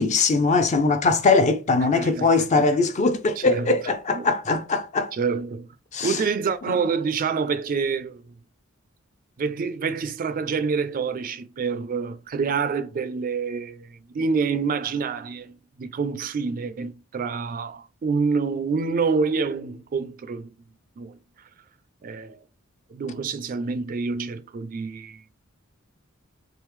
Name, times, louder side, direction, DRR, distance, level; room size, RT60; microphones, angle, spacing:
voice 1, 0.0-5.1 5.9-6.2 6.7-6.8, left 3 dB, 35° left, 0.4 m, -21 dB
voice 2, 1.9-2.6 3.4-3.7 4.1-4.3 5.1-5.8 6.0-8.3 9.4-20.5 21.0-21.2 22.0-22.4 22.9-25.2, right 5 dB, 40° right, 0.3 m, -27 dB
3.6 x 3.1 x 3.1 m
head